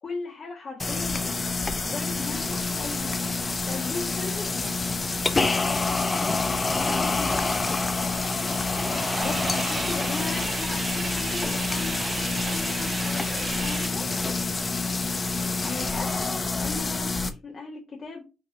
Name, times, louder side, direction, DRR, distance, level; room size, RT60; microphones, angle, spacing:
voice 1, 0.0-3.3 3.6-4.8 6.7-8.1 9.1-14.1 15.6-16.1 16.6-18.2, left 4 dB, 45° left, -2 dB, 1.6 m, -38 dB
sound 1, 0.8-17.3, left 3 dB, 25° left, 0.6 m, -27 dB
sound 2, 7.1-13.9, right 5 dB, 35° right, 0.4 m, -36 dB
5.0 x 3.9 x 2.7 m, 0.29 s
cardioid pair, 90°, 0 cm